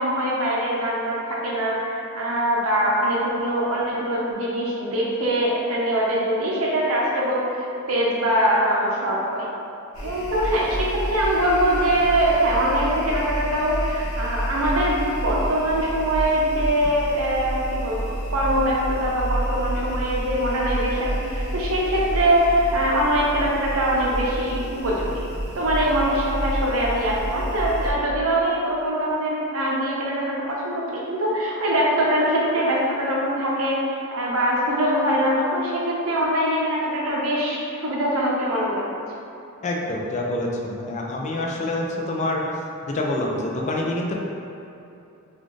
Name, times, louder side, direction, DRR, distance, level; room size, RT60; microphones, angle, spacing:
voice 1, 0.0-9.5 10.0-25.2 25.5-38.9, right 1 dB, 75° right, -4 dB, 0.7 m, -23 dB
sound 1, 9.9-27.9, right 1 dB, 75° left, 0.9 m, -29 dB
voice 2, 39.6-42.5 42.8-44.1, left 1 dB, 35° left, -1 dB, 0.4 m, -26 dB
4.0 x 2.4 x 3.1 m, 2.8 s
head